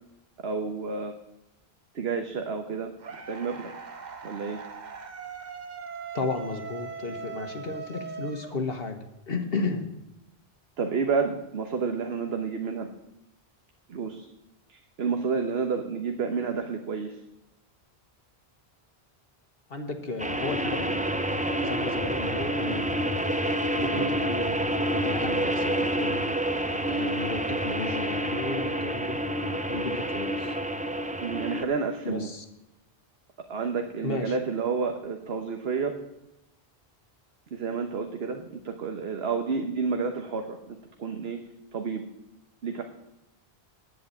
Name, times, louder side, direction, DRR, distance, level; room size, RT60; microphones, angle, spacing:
voice 1, 0.4-1.2 1.9-3.7 4.2-4.6 10.8-12.9 13.9-14.3 14.7-17.2 22.7-22.8 23.9-24.1 31.2-32.3 33.5-36.0 37.5-41.4 41.7-42.0 42.6-42.8, right 5 dB, 75° right, 5 dB, 1.3 m, -30 dB
sound 1, 3.0-9.1, right 6 dB, 45° right, 1.0 m, -40 dB
voice 2, 6.1-9.9 19.7-21.1 21.6-23.0 23.8-24.6 25.0-26.2 26.9-29.2 29.7-30.5 32.0-32.4 34.0-34.4, left 4 dB, 65° left, 6 dB, 1.5 m, -33 dB
sound 2, 20.2-31.6, right 1 dB, 10° right, 0.6 m, -28 dB
10.5 x 8.1 x 8.4 m, 0.89 s
omnidirectional pair, 1.1 m